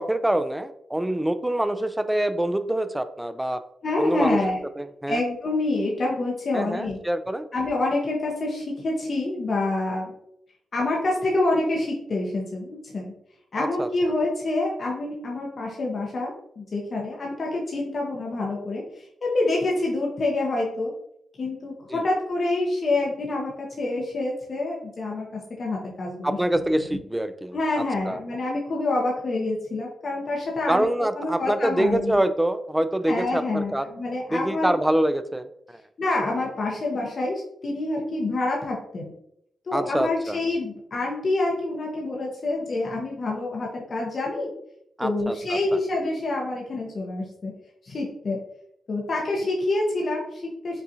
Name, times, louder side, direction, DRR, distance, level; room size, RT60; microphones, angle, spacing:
voice 1, 0.0-3.6 4.0-4.4 4.8-5.2 6.5-7.5 13.6-13.9 21.9-22.0 26.2-27.6 28.1-28.2 30.7-33.9 34.3-35.8 39.7-40.4 45.0-45.8, right 1 dB, 10° right, 11 dB, 0.4 m, -25 dB
voice 2, 3.8-4.6 5.1-7.0 7.5-10.1 10.7-13.1 13.5-20.9 21.4-27.0 27.5-30.9 31.2-32.2 33.1-34.8 36.0-39.1 39.7-44.5 45.0-47.5 47.8-48.4 48.9-50.8, left 2 dB, 55° left, -2 dB, 0.8 m, -27 dB
5.4 x 2.4 x 2.7 m, 0.74 s
cardioid pair, 65°, 0 cm